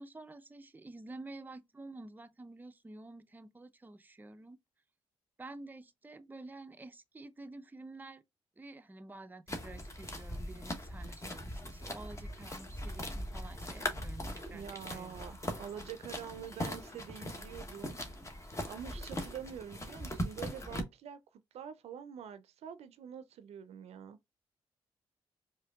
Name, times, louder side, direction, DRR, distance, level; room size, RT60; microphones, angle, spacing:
voice 1, 0.0-4.6 5.4-8.2 8.6-15.2, right 2 dB, 15° right, 0.5 m, -50 dB
sound 1, 9.5-20.8, left 1 dB, 25° left, 1.1 m, -40 dB
voice 2, 14.5-18.0 18.6-24.2, right 8 dB, 70° right, 0.5 m, -46 dB
4.9 x 2.6 x 2.3 m
hypercardioid pair, 50°, 11 cm